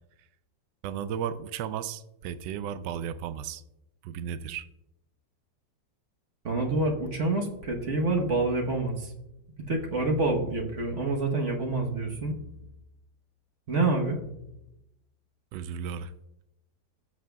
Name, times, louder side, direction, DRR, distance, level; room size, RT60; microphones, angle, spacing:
voice 1, 0.8-3.6 4.0-4.7 15.5-16.1, right 8 dB, 80° right, 13 dB, 1.2 m, -34 dB
voice 2, 6.4-9.1 9.7-12.3 13.7-14.2, right 2 dB, 45° right, 1 dB, 1.3 m, -27 dB
14.0 x 7.4 x 2.3 m, 0.86 s
omnidirectional pair, 1.9 m